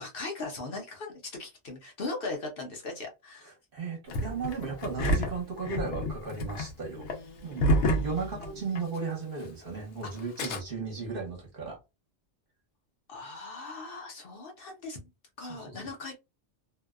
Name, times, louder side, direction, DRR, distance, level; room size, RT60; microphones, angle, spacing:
voice 1, 0.0-3.5 6.9-8.5 10.1-10.3 13.1-15.0 15.4-16.2, left 3 dB, 60° left, 0.8 m, -40 dB
voice 2, 3.7-7.1 7.4-11.8 15.5-15.7, right 4 dB, 55° right, 1.0 m, -35 dB
Engine starting, 4.1-9.0 9.2-9.3 10.2-10.6, equal, 85° left, 0.9 m, -29 dB
2.6 x 2.1 x 2.3 m
omnidirectional pair, 1.2 m